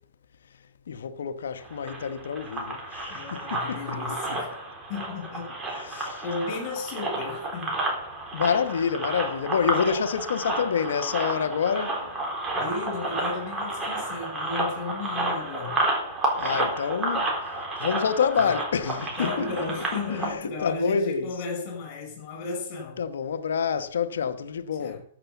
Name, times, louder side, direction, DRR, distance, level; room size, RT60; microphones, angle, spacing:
voice 1, 0.9-4.0 5.7-6.2 8.3-12.1 16.4-17.3 17.8-19.5 20.6-21.3 23.0-25.0, left 6 dB, 75° left, 1.1 m, -27 dB
sound 1, 1.6-20.3, right 2 dB, 15° right, 4.0 m, -31 dB
voice 2, 3.1-4.6 4.9-5.6 5.9-7.8 12.5-15.8 18.4-18.5 19.2-23.0 24.8-25.0, left 3 dB, 45° left, 5.8 m, -34 dB
13.0 x 7.0 x 7.0 m
hypercardioid pair, 135°, 0 cm